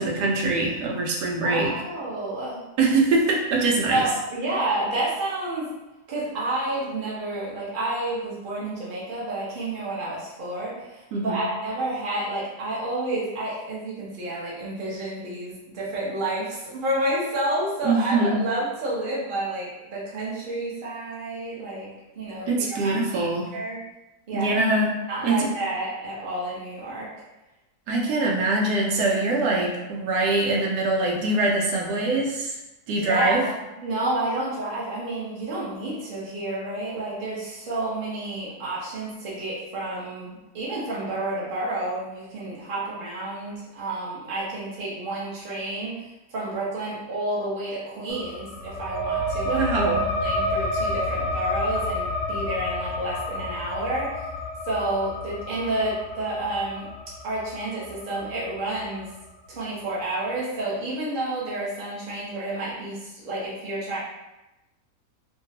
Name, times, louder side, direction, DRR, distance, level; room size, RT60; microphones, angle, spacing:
voice 1, 0.0-1.7 2.8-4.0 11.1-11.4 17.8-18.4 22.5-23.5 24.3-24.9 25.2-25.5 27.9-32.6 32.9-33.4 49.4-50.1, right 2 dB, 85° right, -1 dB, 1.2 m, -23 dB
voice 2, 1.4-2.6 3.9-5.7 6.1-21.9 22.2-23.3 23.5-23.8 24.3-24.6 25.1-27.1 32.9-49.7 50.2-54.3 54.6-56.9 57.2-59.1 59.5-64.0, right 1 dB, 40° right, -7 dB, 0.8 m, -30 dB
sound 1, 48.1-59.2, left 1 dB, 65° left, 0.8 m, -30 dB
3.0 x 2.2 x 2.8 m, 0.99 s
omnidirectional pair, 1.7 m